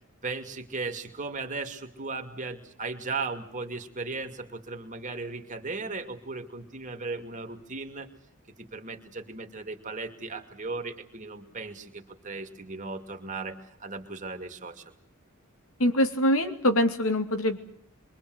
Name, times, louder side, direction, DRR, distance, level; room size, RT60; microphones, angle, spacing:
voice 1, 0.2-8.1 8.6-14.8, right 3 dB, 35° right, 5 dB, 2.5 m, -36 dB
voice 2, 15.8-17.6, equal, 75° left, 6 dB, 2.6 m, -24 dB
27.5 x 23.0 x 8.0 m, 0.64 s
head